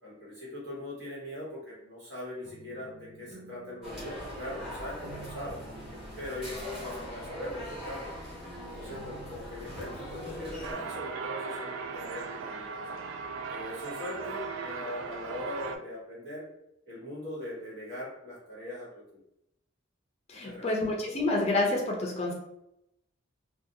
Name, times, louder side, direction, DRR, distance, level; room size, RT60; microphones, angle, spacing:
voice 1, 0.0-5.6 6.2-8.1 8.6-12.7 13.5-16.4 16.9-19.0 20.3-20.7, left 1 dB, 60° right, -6 dB, 1.3 m, -41 dB
sound 1, 2.4-10.6, right 2 dB, 45° right, 0.7 m, -51 dB
sound 2, 3.8-10.7, equal, 5° right, 1.0 m, -41 dB
sound 3, 10.6-15.8, right 5 dB, 85° right, 0.3 m, -38 dB
voice 2, 20.3-22.3, left 2 dB, 30° left, 0 dB, 0.4 m, -28 dB
2.4 x 2.2 x 2.7 m, 0.82 s
head